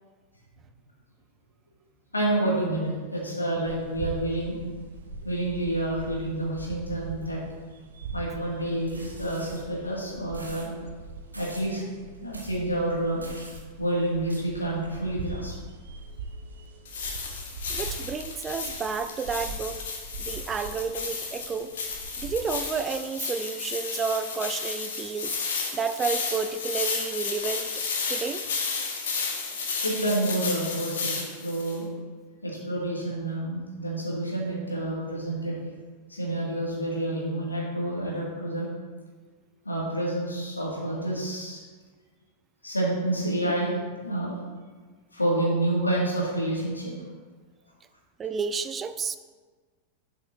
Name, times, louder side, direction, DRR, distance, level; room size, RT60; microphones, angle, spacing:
voice 1, 2.1-4.6 5.2-7.4 8.1-10.7 11.3-11.8 12.2-13.2 13.8-15.5 29.8-31.9 32.4-35.6 36.1-38.7 39.6-41.6 42.6-43.7 44.0-44.4 45.1-46.9, right 1 dB, 80° left, -4 dB, 2.0 m, -28 dB
sound 1, 3.7-22.8, right 3 dB, 60° right, 0.7 m, -42 dB
sound 2, 8.9-9.6 10.3-10.7 11.3-11.7 12.3-12.5 13.2-13.6 14.3-14.4, right 2 dB, 80° right, 1.2 m, -45 dB
sound 3, 16.9-31.8, left 5 dB, 60° left, 1.2 m, -33 dB
voice 2, 17.7-19.9 20.2-21.7 22.2-27.7 28.1-28.4 48.2-49.2, right 5 dB, 20° right, 11 dB, 0.3 m, -31 dB
11.0 x 5.2 x 2.6 m, 1.4 s
figure-of-eight pair, 90°, 0 cm